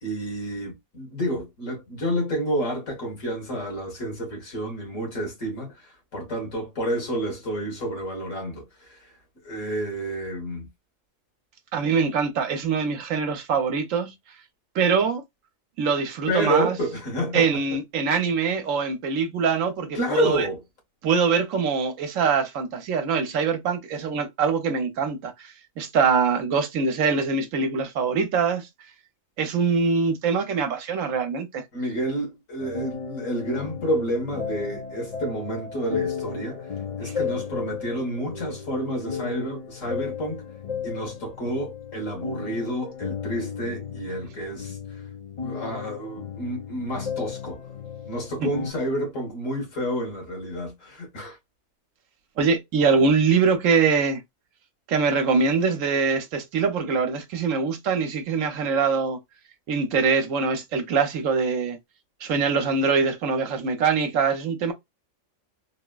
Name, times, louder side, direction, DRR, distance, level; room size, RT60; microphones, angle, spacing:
voice 1, 0.0-9.1 9.4-10.7 16.3-17.6 19.9-20.6 31.7-36.7 37.0-40.4 40.8-44.8 45.4-47.6 48.1-51.4, right 1 dB, 65° left, 1.9 m, -29 dB
voice 2, 11.7-14.1 14.7-15.2 15.8-16.8 17.3-20.5 21.0-28.7 29.4-31.6 37.0-37.1 48.4-48.5 52.4-54.2 54.9-59.2 59.7-61.8 62.2-64.7, right 5 dB, 70° right, 1.1 m, -23 dB
sound 1, 32.6-48.7, left 7 dB, 35° left, 0.5 m, -34 dB
3.8 x 2.1 x 2.2 m
omnidirectional pair, 1.4 m